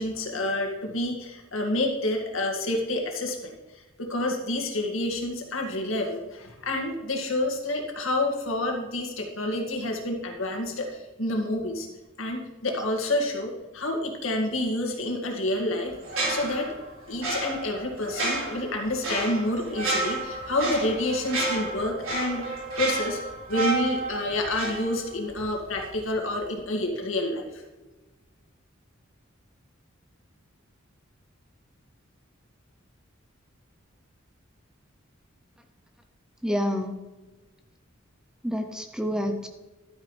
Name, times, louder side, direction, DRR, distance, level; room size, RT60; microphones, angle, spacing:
voice 1, 0.0-11.9 12.2-16.7 17.1-23.2 23.5-27.6, left 1 dB, 75° left, 2 dB, 2.1 m, -29 dB
sound 1, 16.0-25.4 25.7-25.9, right 2 dB, 85° right, 3.8 m, -31 dB
voice 2, 36.4-37.1 38.4-39.5, equal, 5° right, 6 dB, 0.6 m, -28 dB
12.0 x 9.3 x 3.2 m, 1.2 s
head